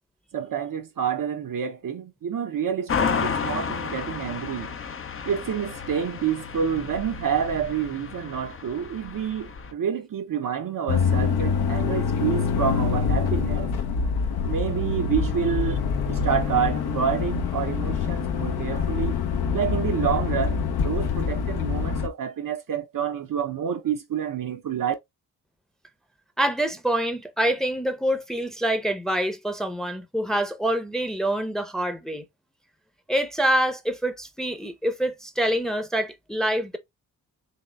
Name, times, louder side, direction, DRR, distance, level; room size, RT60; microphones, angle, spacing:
voice 1, 0.3-4.7 5.2-13.7 14.5-15.8 16.1-19.2 19.5-24.9, right 8 dB, 45° right, 0.7 m, -28 dB
sound 1, 2.9-9.7, left 6 dB, 30° left, 0.6 m, -32 dB
sound 2, 10.9-22.1, left 6 dB, 55° left, 0.8 m, -25 dB
voice 2, 26.4-32.3 33.1-36.8, right 1 dB, ahead, 0.8 m, -26 dB
4.2 x 3.0 x 2.3 m
hypercardioid pair, 40°, 45 cm